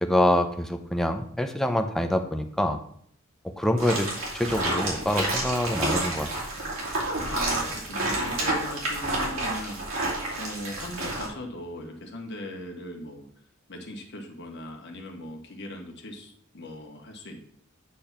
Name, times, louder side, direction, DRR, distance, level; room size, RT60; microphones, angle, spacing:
voice 1, 0.0-2.8 3.6-6.3, left 1 dB, ahead, 5 dB, 0.6 m, -25 dB
sound 1, 3.8-11.3, right 2 dB, 75° right, 2.7 m, -29 dB
voice 2, 7.2-10.0 10.3-13.2 13.7-17.4, left 1 dB, 55° left, 1 dB, 1.2 m, -39 dB
8.6 x 3.4 x 5.8 m, 0.64 s
head